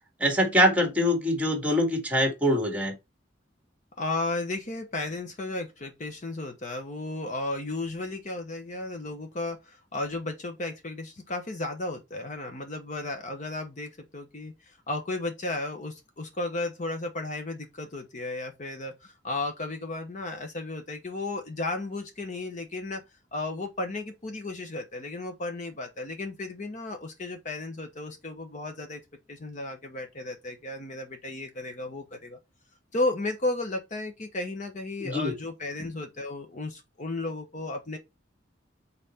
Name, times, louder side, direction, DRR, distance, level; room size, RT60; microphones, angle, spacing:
voice 1, 0.2-3.0 35.0-35.3, equal, 5° right, 1.8 m, -24 dB
voice 2, 4.0-23.0 23.3-29.0 29.3-32.4 32.9-38.0, left 2 dB, 40° left, 0.9 m, -34 dB
5.6 x 4.1 x 4.2 m
head